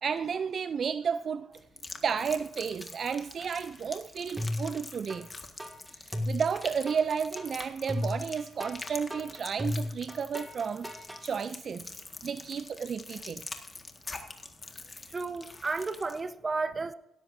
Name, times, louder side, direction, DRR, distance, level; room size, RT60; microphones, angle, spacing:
voice 1, 0.0-1.5 2.0-5.3 5.9-11.9 12.2-13.4, right 6 dB, 50° right, 0.4 m, -32 dB
sound 1, 1.5-16.2, left 3 dB, 25° left, 1.7 m, -45 dB
sound 2, 4.4-5.2 5.6-11.2, left 1 dB, 10° right, 2.0 m, -35 dB
voice 2, 15.1-16.9, right 3 dB, 30° right, 0.9 m, -32 dB
16.5 x 13.5 x 2.7 m
cardioid pair, 90°, 0 cm